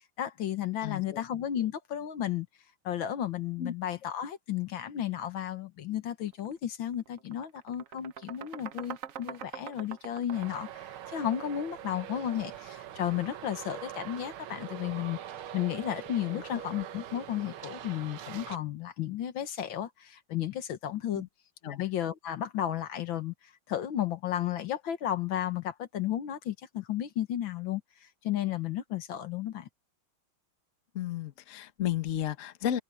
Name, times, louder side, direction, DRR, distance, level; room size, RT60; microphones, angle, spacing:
voice 1, 0.2-2.5 2.8-15.2 15.5-21.3 21.7-23.3 23.7-29.7, left 11 dB, 70° left, 1.8 m, -33 dB
voice 2, 0.8-1.2 3.6-3.7 16.3-16.4 21.1-21.3 21.6-21.8 30.9-32.8, left 11 dB, 45° left, 1.2 m, -33 dB
sound 1, 6.3-6.5 6.9-11.8, right 9 dB, 65° right, 0.8 m, -44 dB
Traffic noise roadway noise, 10.3-18.6, right 10 dB, 80° right, 1.8 m, -43 dB
omnidirectional pair, 2.3 m